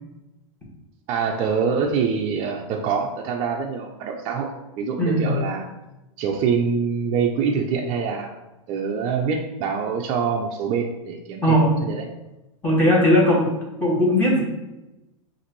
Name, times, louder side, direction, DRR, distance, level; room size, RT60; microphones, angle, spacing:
voice 1, 1.1-5.7 6.2-8.4 8.7-12.0, right 6 dB, 35° right, 0 dB, 0.5 m, -25 dB
voice 2, 5.0-5.4 11.4-11.8 12.6-13.5 13.8-14.4, equal, 10° left, -5 dB, 1.5 m, -18 dB
5.7 x 2.6 x 3.1 m, 0.98 s
hypercardioid pair, 125°, 17 cm